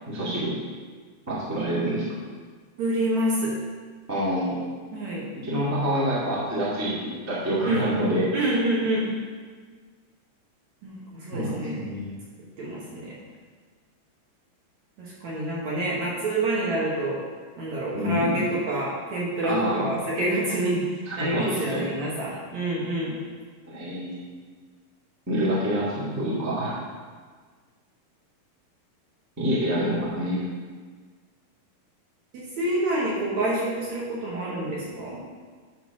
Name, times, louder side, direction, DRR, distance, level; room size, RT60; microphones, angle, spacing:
voice 1, 0.1-0.5 1.3-2.0 4.1-4.6 5.4-8.5 11.3-12.1 17.9-18.4 19.4-20.0 21.0-21.9 23.7-24.2 25.3-26.8 29.4-30.4, equal, 10° right, -8 dB, 1.2 m, -27 dB
voice 2, 2.8-3.5 4.9-5.2 7.6-7.8 8.3-9.1 10.8-11.8 12.6-13.2 15.0-17.2 17.6-23.2 32.3-35.2, right 1 dB, 60° right, -6 dB, 2.3 m, -27 dB
9.7 x 4.1 x 6.0 m, 1.5 s
omnidirectional pair, 4.3 m